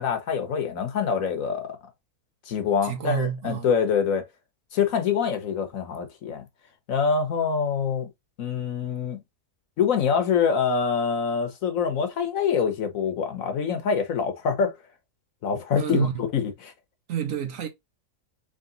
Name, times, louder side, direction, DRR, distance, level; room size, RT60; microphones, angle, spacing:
voice 1, 0.0-1.8 2.5-4.2 4.7-6.4 6.9-8.1 8.4-9.2 9.8-14.8 15.4-16.7, left 6 dB, 65° left, 1.2 m, -25 dB
voice 2, 2.8-3.7 15.7-16.2 17.1-17.7, right 9 dB, 60° right, 1.1 m, -29 dB
3.7 x 3.4 x 3.8 m
omnidirectional pair, 1.7 m